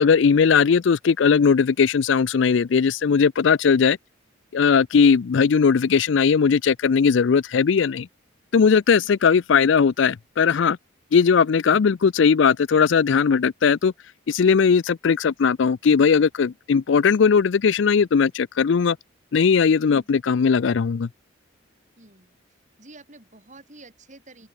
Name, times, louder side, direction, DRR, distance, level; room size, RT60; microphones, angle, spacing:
voice 1, 0.0-4.0 4.5-8.1 8.5-10.8 11.1-13.9 14.3-19.0 19.3-21.1, left 6 dB, 65° left, 0.4 m, -18 dB
voice 2, 8.9-9.2 19.8-20.1 22.0-22.3 22.8-24.5, right 2 dB, 35° right, 7.3 m, -49 dB
open air
head